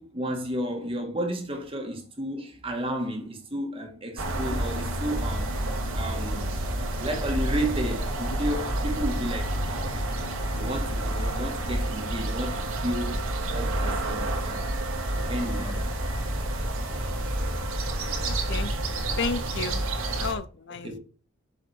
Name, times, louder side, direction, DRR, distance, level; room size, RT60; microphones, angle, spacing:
voice 1, 0.0-5.7 5.9-6.5 7.0-10.0 10.6-13.2 13.5-14.6 15.1-15.9 17.3-17.5 19.6-19.7 20.8-21.0, equal, 25° right, 2.2 m, -32 dB
sound 1, 4.2-20.3, right 1 dB, 70° right, 2.5 m, -29 dB
voice 2, 18.3-18.7 19.2-19.8 20.2-21.0, left 4 dB, 50° left, 0.6 m, -32 dB
8.2 x 6.9 x 4.5 m
head